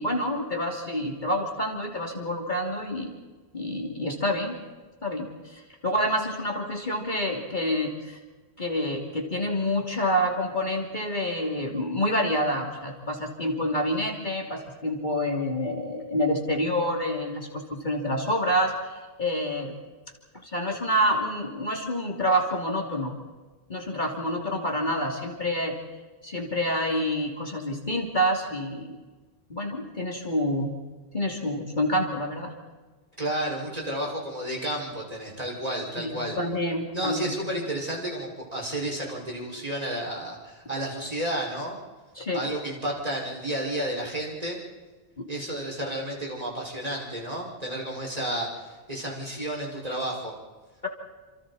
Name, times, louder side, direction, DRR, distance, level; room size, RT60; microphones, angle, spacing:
voice 1, 0.0-3.1 3.5-4.5 5.0-8.2 8.6-19.8 20.4-23.1 23.7-25.8 26.2-29.0 29.5-30.7 31.1-32.5 36.0-37.3 42.2-42.4 45.2-45.3, equal, 45° left, 1 dB, 3.1 m, -28 dB
voice 2, 33.2-36.4 36.9-41.8 42.3-44.6 45.3-50.3, right 1 dB, 35° right, -2 dB, 5.8 m, -31 dB
29.0 x 27.0 x 4.2 m, 1.3 s
omnidirectional pair, 1.1 m